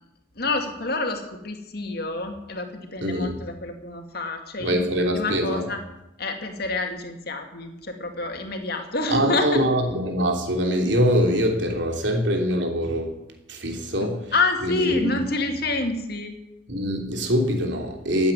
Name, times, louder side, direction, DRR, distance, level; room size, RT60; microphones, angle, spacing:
voice 1, 0.4-4.8 5.1-5.8 6.2-9.6 14.0-16.4, left 3 dB, 55° left, 5 dB, 2.3 m, -28 dB
voice 2, 3.0-3.4 4.6-5.7 9.1-13.2 13.5-14.2 14.6-15.2 16.7-18.3, equal, 70° right, 3 dB, 3.1 m, -23 dB
15.0 x 8.7 x 9.7 m, 0.87 s
head